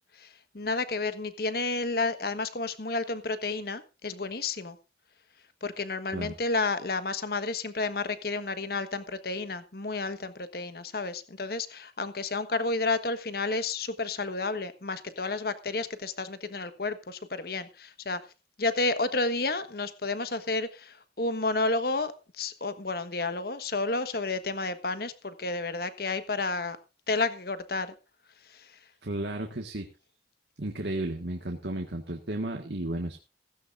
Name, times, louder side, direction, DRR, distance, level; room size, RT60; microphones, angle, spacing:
voice 1, 0.5-4.8 5.6-18.2 18.6-26.8 27.1-27.9, left 3 dB, 55° left, 12 dB, 1.3 m, -31 dB
voice 2, 29.0-29.9 30.6-33.2, right 1 dB, 70° right, 3 dB, 1.6 m, -33 dB
15.5 x 15.5 x 2.5 m, 0.29 s
head